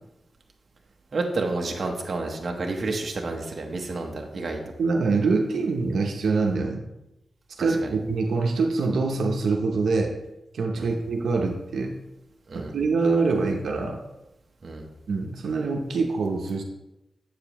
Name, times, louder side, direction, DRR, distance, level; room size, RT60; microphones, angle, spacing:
voice 1, 1.1-4.6 7.6-7.9 10.7-10.9 12.5-12.8 14.6-14.9, right 3 dB, 35° right, 1 dB, 0.8 m, -30 dB
voice 2, 4.8-6.8 7.6-10.1 10.5-12.0 12.5-14.0 15.1-16.6, right 4 dB, 70° right, 1 dB, 0.7 m, -24 dB
7.6 x 6.8 x 3.0 m, 0.95 s
wide cardioid pair, 170°, 0 cm